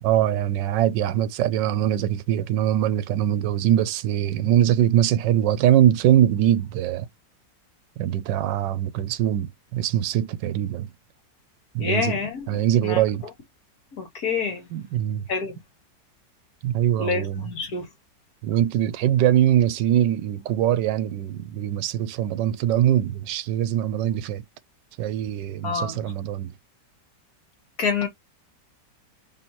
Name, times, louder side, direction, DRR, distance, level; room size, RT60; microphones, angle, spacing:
voice 1, 0.0-7.1 8.0-10.9 11.7-12.2 12.5-13.2 14.7-15.2 16.6-17.4 18.4-24.4 25.0-26.5, right 11 dB, 85° right, 1.3 m, -22 dB
voice 2, 11.8-12.5 12.8-13.0 13.9-14.7 15.3-15.6 16.9-17.9 25.6-26.1 27.8-28.1, left 5 dB, 60° left, 1.7 m, -27 dB
4.2 x 3.4 x 3.0 m
omnidirectional pair, 1.9 m